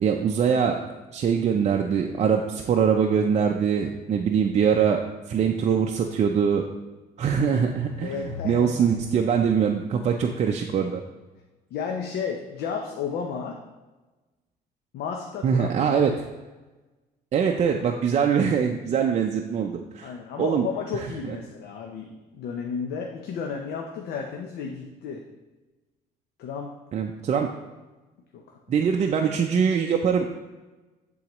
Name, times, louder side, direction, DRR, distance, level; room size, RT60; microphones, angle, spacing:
voice 1, 0.0-0.8 1.1-5.0 5.3-6.6 7.2-11.0 15.4-16.1 17.3-20.1 20.4-20.7 20.9-21.4 26.9-27.5 28.7-30.3, right 7 dB, 40° right, 2 dB, 0.5 m, -23 dB
sound 1, 7.6-11.0, left 5 dB, 40° left, 0.7 m, -42 dB
voice 2, 8.0-8.9 11.7-13.6 14.9-16.2 20.0-22.1 22.3-25.2 26.4-26.7 28.3-28.6, left 6 dB, 70° left, 1 dB, 0.7 m, -33 dB
10.5 x 3.9 x 3.0 m, 1.2 s
cardioid pair, 110°, 17 cm